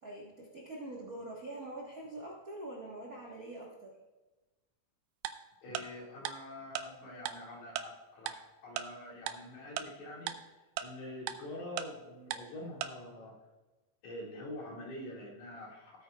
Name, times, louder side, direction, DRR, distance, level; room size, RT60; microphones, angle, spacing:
voice 1, 0.0-4.0, right 1 dB, 50° right, -3 dB, 1.0 m, -44 dB
Tick-tock, 5.2-5.3 5.7-5.8 6.2-6.3 6.7-6.8 7.3-7.4 7.8-7.9 8.3-8.4 8.8-8.9 9.3-9.4 9.8-9.9 10.3-10.4 10.8-10.9 11.3-11.4 11.8-11.9 12.3-12.4 12.8-12.9, right 11 dB, 90° right, 2.1 m, -35 dB
voice 2, 5.6-10.4 10.8-13.4 14.0-16.0, left 1 dB, 70° left, -3 dB, 3.3 m, -46 dB
16.5 x 8.8 x 2.3 m, 1.1 s
omnidirectional pair, 3.6 m